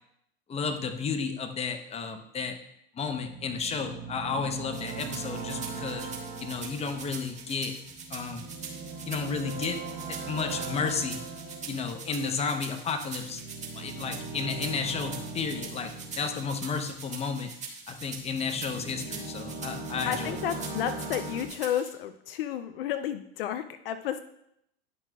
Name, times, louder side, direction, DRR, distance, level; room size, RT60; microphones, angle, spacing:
voice 1, 0.5-2.6 3.0-6.1 6.4-7.7 8.1-8.5 9.1-9.8 10.1-11.2 11.7-13.4 13.7-17.5 17.9-20.4, left 5 dB, 20° left, 7 dB, 0.9 m, -32 dB
sound 1, 3.1-17.4 17.9-21.5, right 4 dB, 45° right, 2.6 m, -40 dB
sound 2, 4.7-21.9, right 5 dB, 25° right, 1.7 m, -43 dB
voice 2, 20.1-24.2, left 10 dB, 70° left, 10 dB, 0.6 m, -32 dB
10.5 x 6.0 x 2.4 m, 0.75 s
hypercardioid pair, 100°, 30 cm